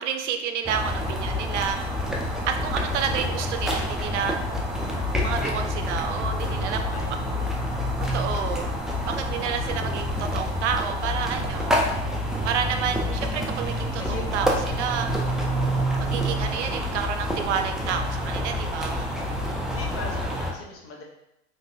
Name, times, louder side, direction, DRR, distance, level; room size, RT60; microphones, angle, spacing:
voice 1, 0.0-1.8 2.4-4.4 5.2-6.8 8.1-8.7 9.1-11.8 12.4-15.1 15.9-19.1, right 7 dB, 80° right, 6 dB, 0.5 m, -29 dB
sound 1, 0.6-20.5, left 1 dB, ahead, 0.3 m, -27 dB
voice 2, 5.2-5.6 6.0-7.6 14.0-14.3 19.1-19.4 19.6-21.0, left 3 dB, 40° left, 0 dB, 0.9 m, -40 dB
3.2 x 2.6 x 2.7 m, 0.90 s
hypercardioid pair, 90°, 35 cm